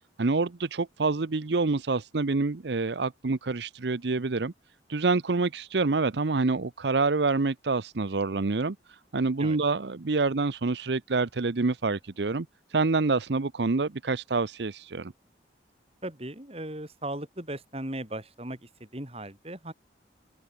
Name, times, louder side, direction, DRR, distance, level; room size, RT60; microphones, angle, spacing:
voice 1, 0.2-4.5 4.9-15.1, right 3 dB, 65° right, 0.7 m, -27 dB
voice 2, 16.0-19.7, right 1 dB, 30° right, 4.5 m, -37 dB
open air
head